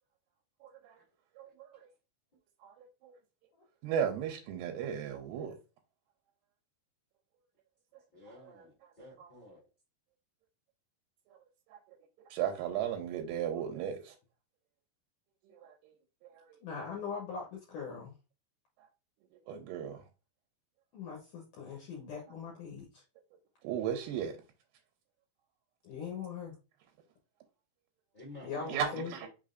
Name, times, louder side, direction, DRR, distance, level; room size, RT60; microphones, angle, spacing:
voice 1, 0.6-1.0 1.4-1.5 2.6-3.2 3.8-5.5 8.4-8.6 9.2-9.3 12.3-14.1 15.5-15.7 16.2-16.3 19.5-20.0 23.6-24.4 28.7-29.2, right 8 dB, 80° right, 2.5 m, -35 dB
voice 2, 8.1-9.6 28.1-29.3, left 1 dB, 40° left, 0.6 m, -52 dB
voice 3, 16.6-18.1 20.9-23.0 25.8-26.5 28.4-29.1, left 6 dB, 70° left, 2.0 m, -41 dB
5.6 x 3.6 x 2.5 m
omnidirectional pair, 4.8 m